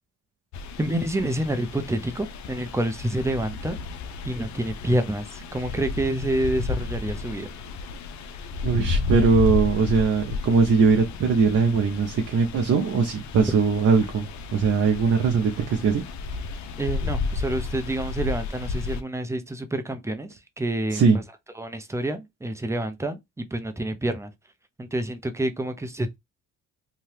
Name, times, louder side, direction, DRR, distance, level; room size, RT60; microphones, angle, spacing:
sound 1, 0.5-19.0, left 4 dB, 70° left, 0.5 m, -32 dB
voice 1, 0.8-3.8 4.2-7.5 16.8-21.2 21.6-24.3 24.8-26.2, right 1 dB, 10° right, 0.6 m, -28 dB
voice 2, 8.6-16.0 20.9-21.2, right 5 dB, 55° right, 0.7 m, -21 dB
2.8 x 2.3 x 3.2 m
cardioid pair, 90°, 30 cm